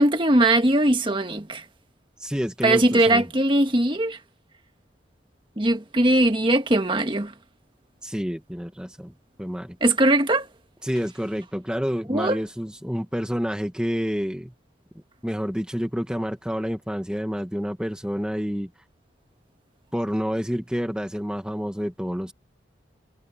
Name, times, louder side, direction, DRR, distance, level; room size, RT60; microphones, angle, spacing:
voice 1, 0.0-1.6 2.6-4.2 5.6-7.3 9.8-10.5 12.1-12.4, right 1 dB, 25° right, 1.6 m, -20 dB
voice 2, 2.2-3.2 8.0-9.1 9.4-9.8 10.8-14.5 15.2-18.7 19.9-22.3, equal, 5° right, 1.4 m, -28 dB
head